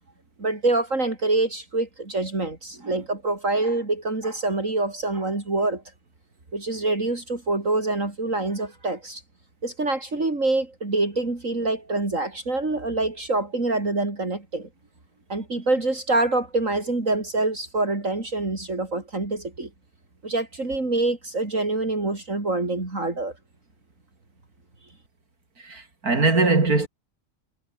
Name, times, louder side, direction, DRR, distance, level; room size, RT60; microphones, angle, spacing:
voice 1, 0.4-5.8 6.5-9.2 9.6-14.7 15.3-19.7 20.2-23.3, right 2 dB, 60° right, 4.7 m, -25 dB
voice 2, 25.6-26.9, right 3 dB, 90° right, 4.4 m, -21 dB
omnidirectional pair, 1.5 m